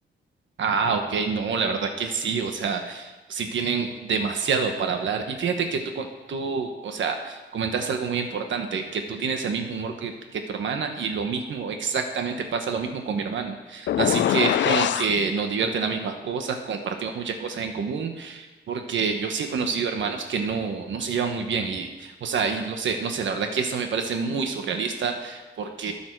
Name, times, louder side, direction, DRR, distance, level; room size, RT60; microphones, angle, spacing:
voice 1, 0.6-25.9, right 5 dB, 80° right, 5 dB, 1.2 m, -27 dB
sound 1, 13.9-15.1, left 11 dB, 70° left, 0.4 m, -22 dB
21.5 x 7.2 x 4.7 m, 1.2 s
wide cardioid pair, 125°, 19 cm